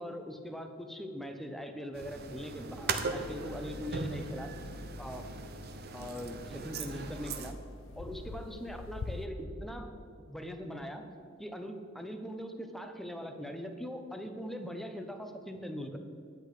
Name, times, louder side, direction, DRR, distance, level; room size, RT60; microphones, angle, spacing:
voice 1, 0.0-4.5 5.0-5.3 5.9-7.6 8.0-9.9 10.2-11.1 11.4-16.0, equal, ahead, 5 dB, 0.7 m, -41 dB
sound 1, 1.9-7.5, right 3 dB, 50° right, 0.8 m, -39 dB
sound 2, 3.4-9.3, left 3 dB, 80° left, 0.6 m, -47 dB
10.5 x 8.4 x 4.9 m, 2.3 s
head